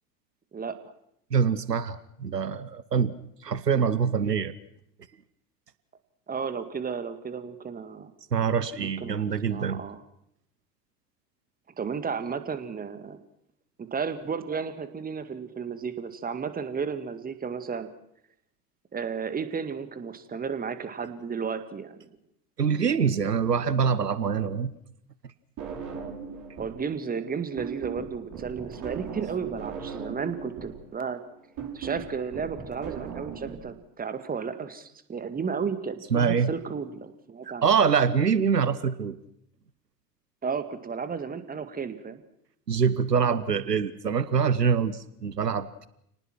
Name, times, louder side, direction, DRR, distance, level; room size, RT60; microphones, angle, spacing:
voice 1, 1.3-3.1 3.4-4.5 8.3-9.8 22.6-24.7 36.1-36.5 37.6-39.2 42.7-45.9, right 6 dB, 85° right, 16 dB, 1.1 m, -24 dB
voice 2, 6.3-8.1 8.8-10.0 11.8-13.2 13.8-17.9 18.9-22.1 26.6-31.2 31.7-37.6 40.4-42.2, right 6 dB, 20° right, 10 dB, 2.0 m, -33 dB
sound 1, 25.6-26.8 27.1-33.6, right 6 dB, 40° right, 6.3 m, -38 dB
30.0 x 19.0 x 6.1 m, 0.75 s
figure-of-eight pair, 80°, 48 cm